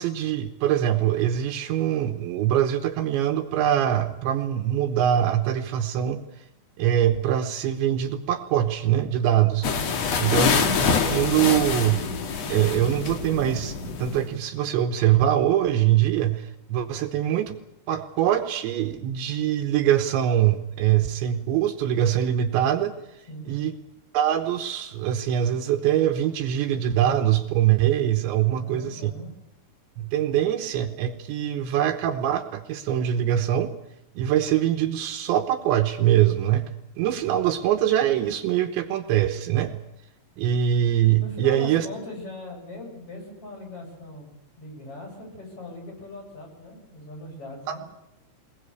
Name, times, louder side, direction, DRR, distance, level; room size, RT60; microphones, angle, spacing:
voice 1, 0.0-6.2 6.8-9.7 10.2-12.1 12.5-17.6 17.9-23.0 23.5-23.7 24.1-29.1 30.0-33.7 34.2-36.6 37.0-39.8 40.4-41.9 47.7-47.8, right 11 dB, 75° right, 7 dB, 3.1 m, -23 dB
sound 1, 9.6-14.3, left 6 dB, 70° left, 1.6 m, -25 dB
voice 2, 28.5-29.3 41.2-47.8, left 2 dB, 30° left, 0 dB, 7.7 m, -40 dB
21.5 x 20.5 x 8.1 m, 0.88 s
omnidirectional pair, 5.5 m